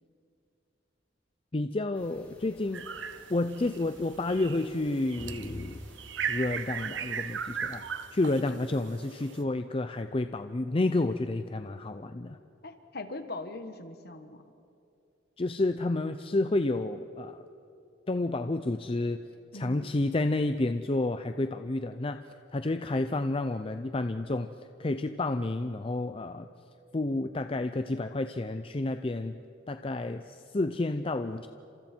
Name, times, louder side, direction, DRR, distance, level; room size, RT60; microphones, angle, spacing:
voice 1, 1.5-2.9 3.3-5.8 6.3-7.8 8.1-12.4 15.4-17.4 18.1-19.2 19.5-22.2 22.5-24.5 24.8-26.5 26.9-29.4 29.7-31.5, left 2 dB, 30° left, 9 dB, 0.5 m, -30 dB
sound 1, 1.9-7.8, equal, 10° left, 3.9 m, -48 dB
sound 2, 2.7-3.8 4.2-9.4, right 7 dB, 70° right, 0.9 m, -37 dB
voice 2, 12.6-14.4 19.5-19.9, left 2 dB, 55° left, 8 dB, 1.5 m, -41 dB
29.5 x 27.0 x 4.5 m, 2.6 s
head